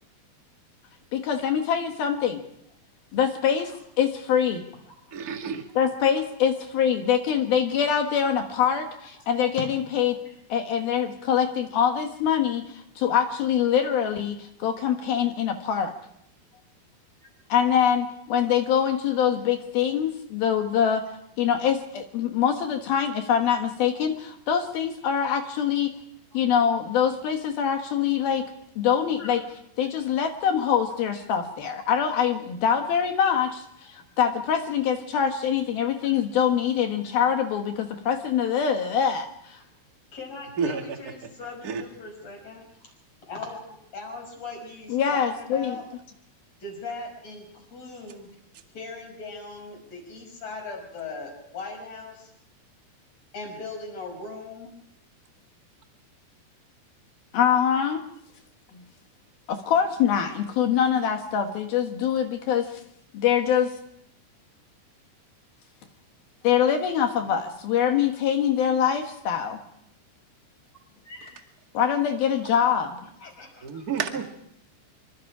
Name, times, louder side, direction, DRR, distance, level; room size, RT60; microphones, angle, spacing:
voice 1, 1.1-2.4 3.1-3.7 4.0-4.6 5.8-10.2 10.5-15.9 17.5-21.0 21.4-25.9 26.3-28.5 28.8-29.4 29.8-39.6 44.9-45.8 57.3-58.0 59.5-62.7 63.1-63.7 66.4-69.6 71.7-73.0, left 8 dB, 65° left, 3.0 m, -24 dB
voice 2, 5.1-5.7 40.6-41.0 41.6-41.8 73.6-74.3, right 6 dB, 60° right, 0.9 m, -29 dB
voice 3, 40.1-42.9 43.3-45.8 46.6-48.3 48.7-52.3 53.3-54.7 71.0-71.3 73.2-74.0, left 3 dB, 35° left, 6.9 m, -39 dB
26.0 x 24.5 x 4.9 m
omnidirectional pair, 5.0 m